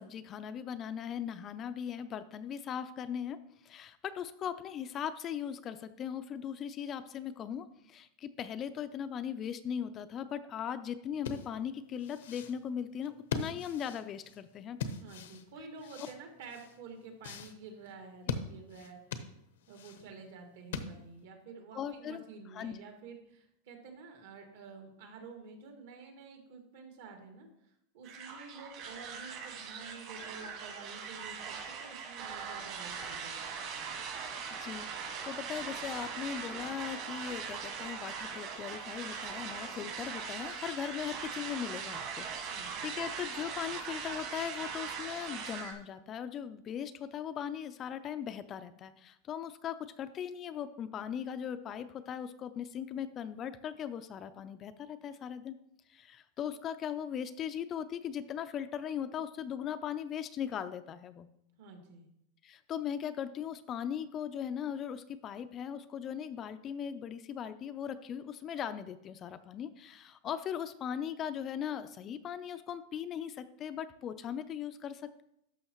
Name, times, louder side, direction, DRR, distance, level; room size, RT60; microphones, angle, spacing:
voice 1, 0.0-3.4 3.6-14.8 18.3-18.4 21.7-22.2 22.5-22.8 34.5-55.6 55.9-61.3 62.4-75.2, left 8 dB, 25° left, 12 dB, 0.3 m, -39 dB
sound 1, 11.1-21.3, left 5 dB, 90° left, 0.8 m, -42 dB
voice 2, 15.0-19.0 19.7-34.0 42.5-42.9 61.6-62.1, right 4 dB, 65° right, 3 dB, 1.8 m, -50 dB
sound 2, 28.0-45.7, right 6 dB, 45° right, 1.7 m, -40 dB
12.0 x 6.2 x 3.0 m, 0.78 s
supercardioid pair, 160°, 0 cm